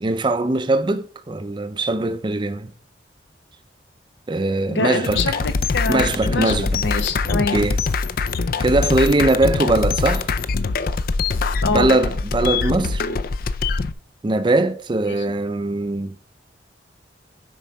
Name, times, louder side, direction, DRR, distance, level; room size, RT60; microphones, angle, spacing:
voice 1, 0.0-2.7 4.3-5.2 5.9-6.8 7.3-7.8 8.6-10.3 11.7-13.0 14.2-16.1, right 2 dB, 25° right, 0.5 m, -21 dB
voice 2, 4.7-7.6 11.6-12.0 15.1-15.2, left 3 dB, 85° left, 0.9 m, -25 dB
sound 1, 5.0-13.9, left 4 dB, 55° left, 0.4 m, -23 dB
7.4 x 4.6 x 5.3 m
head